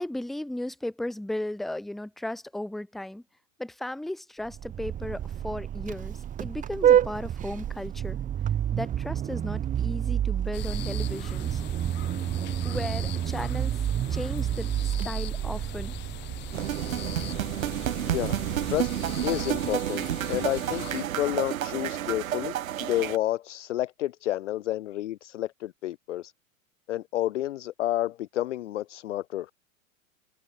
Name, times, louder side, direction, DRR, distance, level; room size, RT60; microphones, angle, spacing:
voice 1, 0.0-3.2 3.6-8.2 8.7-11.6 12.6-13.8 14.1-15.9, left 1 dB, ahead, 0.6 m, -35 dB
Vehicle horn car horn honking, 4.5-19.8, right 10 dB, 20° right, 1.5 m, -29 dB
sound 1, 10.5-21.0, left 18 dB, 25° left, 1.1 m, -43 dB
sound 2, 16.5-23.2, right 11 dB, 70° right, 0.7 m, -30 dB
voice 2, 18.1-18.4 18.7-18.9 19.2-26.3 26.9-29.5, left 14 dB, 60° left, 0.7 m, -30 dB
figure-of-eight pair, 110°, 42 cm